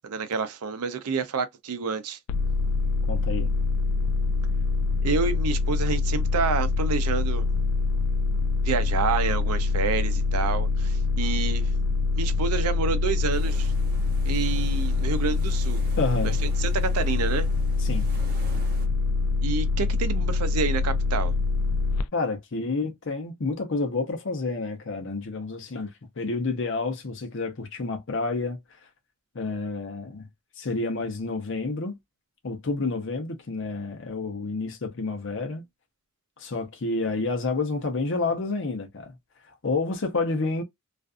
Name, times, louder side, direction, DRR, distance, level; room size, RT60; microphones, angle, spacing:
voice 1, 0.0-2.2 5.0-7.5 8.6-11.7 12.2-13.7 14.2-15.8 16.2-16.3 16.6-17.5 19.4-21.3, right 5 dB, 80° right, 0.5 m, -28 dB
sound 1, 2.3-22.0, left 3 dB, 90° left, 0.3 m, -25 dB
voice 2, 3.1-3.5 16.0-16.4 17.8-18.1 22.1-25.9 26.2-28.6 29.3-30.3 30.6-32.0 32.4-35.6 36.4-39.1 39.5-40.6, left 3 dB, 55° left, 0.7 m, -29 dB
sound 2, 13.3-18.9, right 1 dB, 45° right, 0.8 m, -43 dB
2.5 x 2.3 x 2.4 m
head